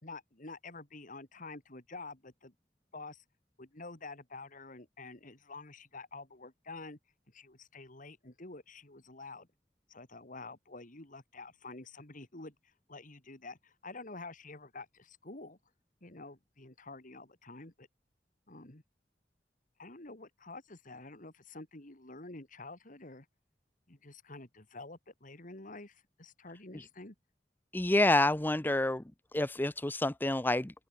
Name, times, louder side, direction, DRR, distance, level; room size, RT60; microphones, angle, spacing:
voice 1, 0.0-2.5 2.9-3.2 3.6-7.0 7.3-9.5 9.9-15.6 16.0-17.9 18.5-18.8 19.8-23.3 23.9-27.1, left 3 dB, 45° left, 2.7 m, -48 dB
voice 2, 27.7-29.0 29.3-30.7, left 2 dB, 10° left, 0.6 m, -28 dB
head